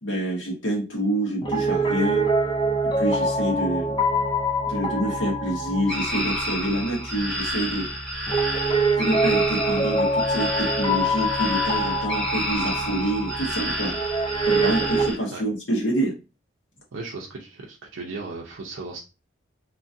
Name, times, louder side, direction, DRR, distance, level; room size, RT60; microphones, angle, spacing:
voice 1, 0.0-2.3 3.0-3.9 4.7-7.9 9.0-14.0 14.4-16.1, right 1 dB, 70° left, -2 dB, 1.2 m, -27 dB
Piano, 1.4-15.1, right 1 dB, 25° left, 0.4 m, -25 dB
sound 1, 5.9-15.2, equal, 5° left, 0.9 m, -30 dB
voice 2, 16.9-19.1, right 3 dB, 90° right, -1 dB, 0.5 m, -36 dB
2.9 x 2.5 x 2.5 m, 0.30 s
head